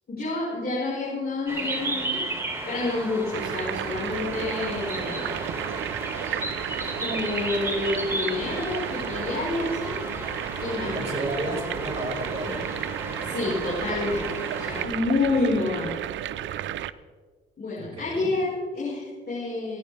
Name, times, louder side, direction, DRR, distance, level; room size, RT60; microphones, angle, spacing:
voice 1, 0.1-2.2 2.6-5.4 6.8-9.9 10.6-11.2 13.2-15.9 17.6-19.8, left 3 dB, 50° left, -6 dB, 5.4 m, -29 dB
sound 1, 1.5-14.8, right 2 dB, 15° right, 3.8 m, -34 dB
sound 2, 3.3-16.9, right 12 dB, 75° right, 0.6 m, -33 dB
voice 2, 10.8-12.7 17.8-18.3, right 1 dB, 30° right, -3 dB, 5.8 m, -32 dB
28.0 x 10.0 x 3.6 m, 1.5 s
cardioid pair, 90°, 20 cm